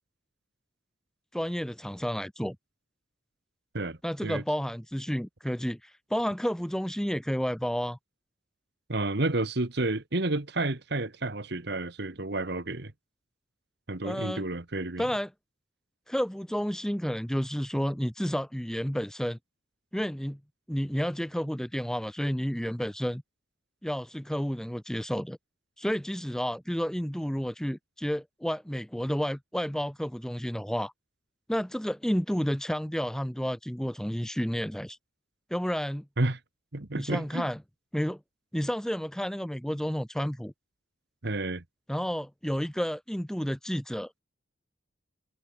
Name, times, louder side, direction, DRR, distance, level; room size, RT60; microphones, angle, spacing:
voice 1, 1.3-2.6 4.0-8.0 14.0-14.4 15.0-15.3 16.1-19.4 19.9-20.4 20.7-23.2 23.8-25.4 25.8-30.9 31.5-35.0 35.5-36.0 37.0-37.6 37.9-38.2 38.5-40.5 41.9-44.2, equal, 5° left, 0.6 m, -31 dB
voice 2, 8.9-12.9 13.9-15.1 36.2-36.4 36.7-37.5 41.2-41.6, right 2 dB, 55° right, 1.5 m, -30 dB
head